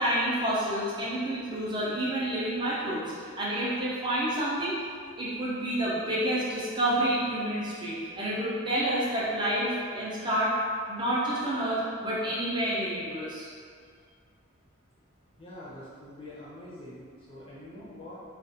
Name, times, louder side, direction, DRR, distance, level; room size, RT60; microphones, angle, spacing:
voice 1, 0.0-4.8 5.2-10.5 10.9-13.5, right 1 dB, 20° right, -8 dB, 0.5 m, -29 dB
voice 2, 15.4-18.2, left 1 dB, 25° left, -9 dB, 0.6 m, -45 dB
2.4 x 2.3 x 2.7 m, 2.1 s
head